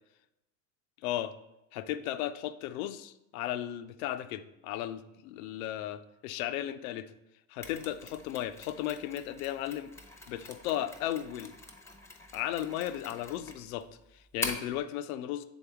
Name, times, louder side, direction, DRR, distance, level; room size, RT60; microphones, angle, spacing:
voice 1, 1.0-1.3 1.7-7.1 7.5-9.9 10.3-11.5 12.3-13.9 14.1-15.4, left 12 dB, 90° left, 11 dB, 0.6 m, -35 dB
Mechanisms, 7.6-14.8, left 2 dB, 5° left, 0.7 m, -43 dB
7.1 x 3.9 x 3.5 m, 0.92 s
supercardioid pair, 125°, 41 cm